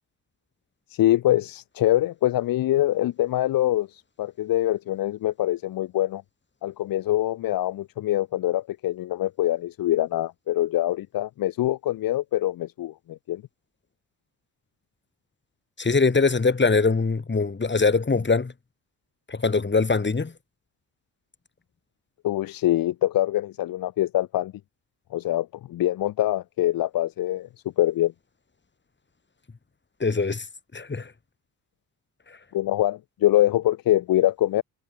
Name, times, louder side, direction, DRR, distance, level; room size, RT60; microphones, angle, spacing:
voice 1, 0.9-6.2 6.6-13.4 22.2-24.5 25.1-27.5 27.8-28.1 32.5-34.6, left 14 dB, 50° left, 0.6 m, -24 dB
voice 2, 15.8-18.5 19.3-20.3 30.0-30.5 30.7-31.1 32.3-32.4, left 4 dB, 25° left, 1.8 m, -22 dB
hypercardioid pair, 45°, 46 cm